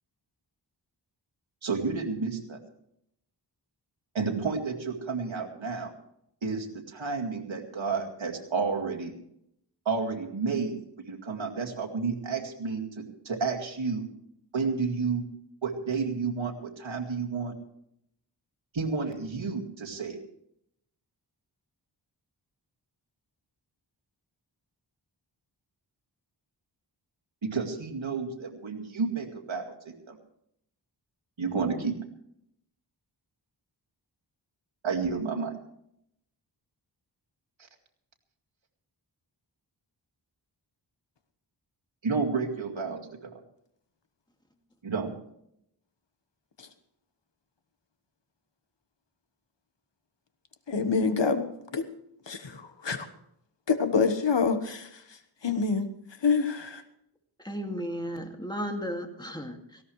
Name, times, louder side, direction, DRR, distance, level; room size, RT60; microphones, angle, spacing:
voice 1, 1.6-2.6 4.1-5.9 6.4-9.1 9.9-10.8 11.1-14.1 14.5-15.2 15.6-17.5 18.7-20.2 27.4-29.7 30.1-30.2 31.4-31.9 34.8-35.5 42.0-43.3 44.8-45.1, right 4 dB, 90° right, 2 dB, 2.2 m, -31 dB
voice 2, 50.7-51.5 51.7-51.8 52.3-53.1 53.7-54.9 55.4-55.9 56.2-56.8, left 5 dB, 70° left, 9 dB, 1.4 m, -26 dB
voice 3, 57.4-59.8, equal, 10° left, 3 dB, 2.3 m, -34 dB
18.0 x 16.5 x 3.3 m, 0.74 s
wide cardioid pair, 65°, 45 cm